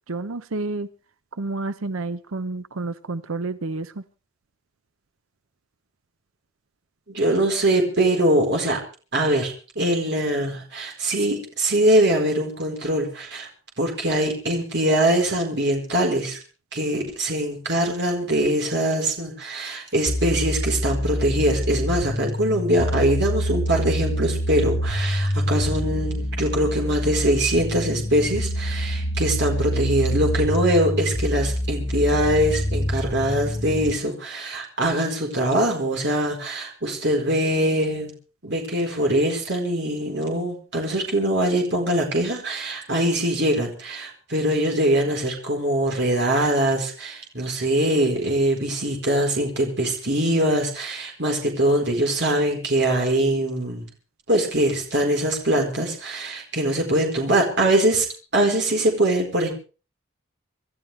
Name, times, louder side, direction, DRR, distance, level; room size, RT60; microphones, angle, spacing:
voice 1, 0.1-0.9 1.4-4.0, right 3 dB, 90° right, 12 dB, 0.8 m, -29 dB
voice 2, 7.1-8.8 9.1-13.5 13.8-16.4 16.7-38.1 38.4-53.9 54.3-58.1 58.3-59.5, right 1 dB, 55° right, 1 dB, 4.4 m, -22 dB
sound 1, 20.1-33.9, equal, 65° left, 5.4 m, -26 dB
27.0 x 13.0 x 3.4 m, 0.37 s
head